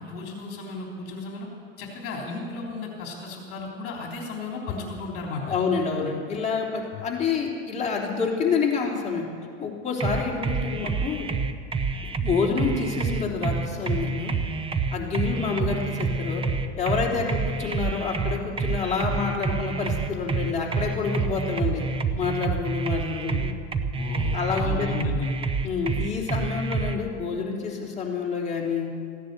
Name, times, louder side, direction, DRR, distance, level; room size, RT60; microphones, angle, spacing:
voice 1, 0.0-1.5 1.8-5.6 6.9-7.0 17.2-17.3 23.9-25.3, left 4 dB, 45° left, -1 dB, 3.6 m, -34 dB
voice 2, 5.5-9.2 9.6-11.3 12.2-14.3 14.9-16.4 16.8-21.8 22.1-23.5 24.3-25.0 25.6-28.9, left 5 dB, 20° left, -3 dB, 3.4 m, -28 dB
sound 1, 10.0-27.0, right 4 dB, 15° right, 0.7 m, -28 dB
16.0 x 10.0 x 8.2 m, 2.3 s
supercardioid pair, 125°, 32 cm